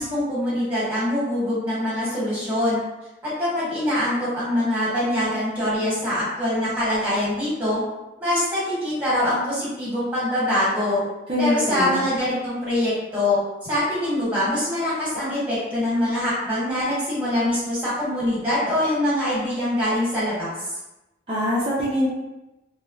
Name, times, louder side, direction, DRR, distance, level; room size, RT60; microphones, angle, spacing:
voice 1, 0.0-2.8 3.2-7.8 8.2-11.0 11.4-20.7, left 1 dB, 10° right, -9 dB, 1.1 m, -24 dB
voice 2, 11.3-12.1 21.3-22.1, left 1 dB, 30° right, -10 dB, 0.5 m, -23 dB
3.1 x 2.1 x 2.3 m, 0.99 s
head